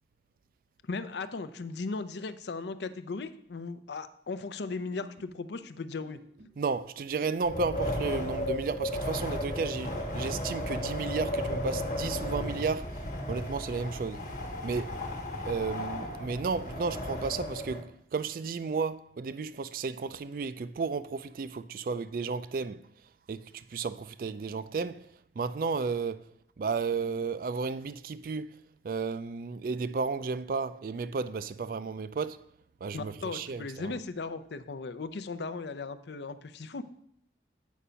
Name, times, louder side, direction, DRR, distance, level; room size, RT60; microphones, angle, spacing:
voice 1, 0.9-6.2 32.9-36.8, left 4 dB, 75° left, 0.5 m, -37 dB
sound 1, 4.8-13.0, equal, 70° right, 1.3 m, -56 dB
voice 2, 6.6-13.0 13.3-14.3 14.6-15.0 15.4-22.8 23.3-25.1 25.4-26.2 26.6-28.6 28.8-32.4 32.8-34.0, right 5 dB, 50° right, 0.3 m, -33 dB
Wind, 7.4-17.8, left 1 dB, 45° left, 1.2 m, -34 dB
8.3 x 5.1 x 5.6 m
head